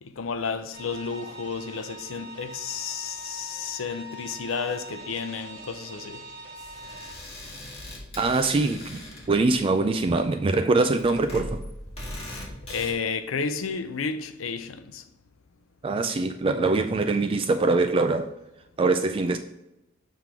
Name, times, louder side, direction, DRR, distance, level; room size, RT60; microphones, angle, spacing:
voice 1, 0.0-6.2 12.7-15.0, left 5 dB, 90° left, 0.6 m, -32 dB
sound 1, 0.7-7.1, right 1 dB, 65° right, 1.7 m, -42 dB
sound 2, 6.6-12.9, left 1 dB, 30° left, 1.8 m, -40 dB
voice 2, 8.2-9.0 9.3-11.6 15.8-18.3 18.8-19.4, right 3 dB, 25° right, 0.3 m, -23 dB
7.4 x 3.7 x 4.6 m
head